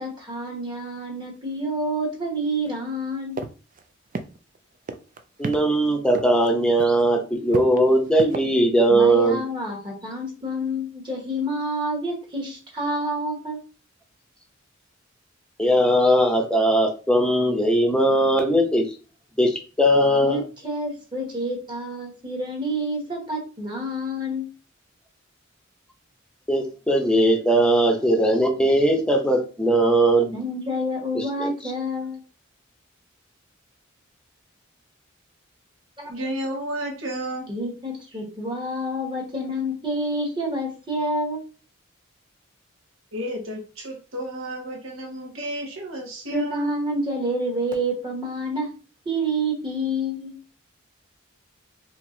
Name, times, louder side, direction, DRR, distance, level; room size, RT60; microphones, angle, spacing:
voice 1, 0.0-3.4 8.9-13.6 20.2-24.4 30.3-32.2 36.0-36.1 37.5-41.4 46.3-48.7 49.0-50.3, equal, 25° right, -1 dB, 1.4 m, -28 dB
sound 1, 3.4-3.5 3.8-3.9 4.1-4.6 4.9-5.6 6.1-6.5 6.8-7.0 7.5-8.4, right 3 dB, 40° right, 0.4 m, -31 dB
voice 2, 5.4-9.4 15.6-18.9 19.4-20.4 26.5-30.4 31.1-31.5, right 1 dB, 5° left, 2 dB, 0.7 m, -19 dB
voice 3, 36.1-37.5 43.1-46.7, right 1 dB, 75° right, 0 dB, 1.5 m, -32 dB
4.4 x 2.9 x 2.7 m, 0.35 s
head